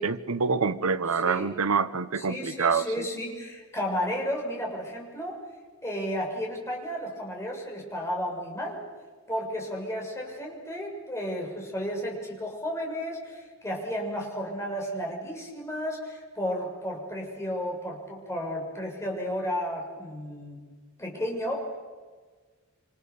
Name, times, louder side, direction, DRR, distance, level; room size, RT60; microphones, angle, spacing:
voice 1, 0.0-2.9, right 5 dB, 80° right, 14 dB, 0.9 m, -26 dB
voice 2, 1.1-1.5 2.1-5.4 5.8-8.8 9.3-20.6 21.0-21.8, equal, 15° left, -1 dB, 6.8 m, -33 dB
27.5 x 26.5 x 7.0 m, 1.4 s
head